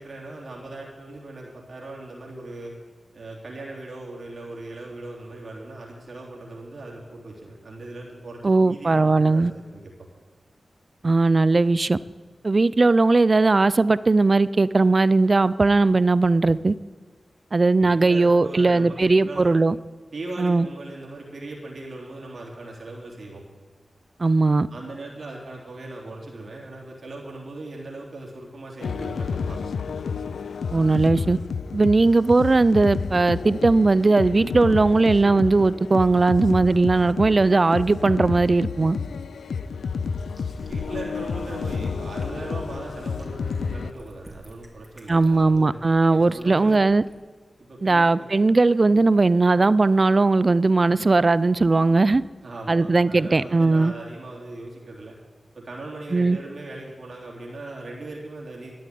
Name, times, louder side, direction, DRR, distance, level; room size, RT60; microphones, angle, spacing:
voice 1, 0.0-2.7 3.1-9.9 17.8-19.5 20.1-23.4 24.7-29.7 40.7-45.7 46.1-46.8 47.7-48.3 52.4-55.1 55.5-58.7, right 2 dB, 65° right, -3 dB, 3.3 m, -38 dB
voice 2, 8.4-9.5 11.0-12.0 12.4-16.7 17.5-19.8 20.4-20.7 24.2-24.7 30.7-31.4 31.7-39.0 45.1-47.0 47.8-52.2 52.7-53.9 56.1-56.4, right 3 dB, 50° right, 18 dB, 0.5 m, -18 dB
sound 1, 28.8-43.9, left 5 dB, 90° left, 0.4 m, -30 dB
sound 2, 40.3-47.2, equal, 15° right, 3.2 m, -48 dB
12.0 x 8.7 x 9.5 m, 1.4 s
cardioid pair, 45°, 0 cm